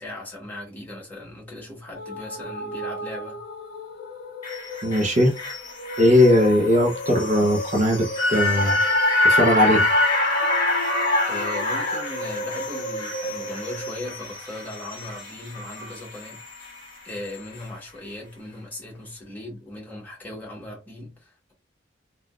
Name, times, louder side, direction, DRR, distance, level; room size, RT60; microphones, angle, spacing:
voice 1, 0.0-3.4 11.2-16.4 17.0-21.5, left 1 dB, 10° left, 1.2 m, -38 dB
sound 1, 1.9-14.0, left 2 dB, 55° left, 0.4 m, -35 dB
sound 2, 4.4-16.8 17.1-17.2, left 2 dB, 25° left, 1.8 m, -25 dB
voice 2, 4.8-5.3 6.0-8.8 9.2-9.9, left 1 dB, 40° right, 0.6 m, -19 dB
3.6 x 2.3 x 2.4 m
head